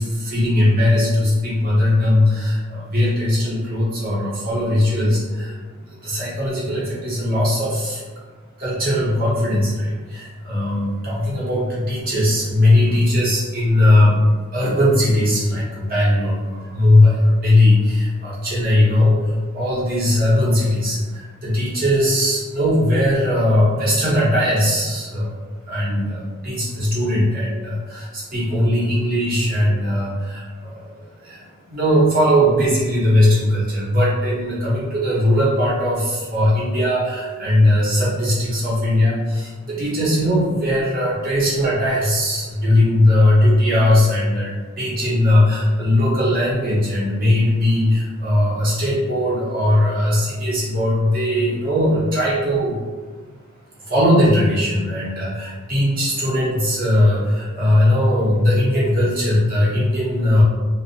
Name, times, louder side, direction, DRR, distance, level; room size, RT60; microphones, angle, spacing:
voice 1, 0.0-8.0 8.6-14.2 14.5-25.3 25.7-52.8 53.8-60.4, left 1 dB, 40° right, -8 dB, 0.9 m, -19 dB
2.6 x 2.1 x 2.7 m, 1.4 s
head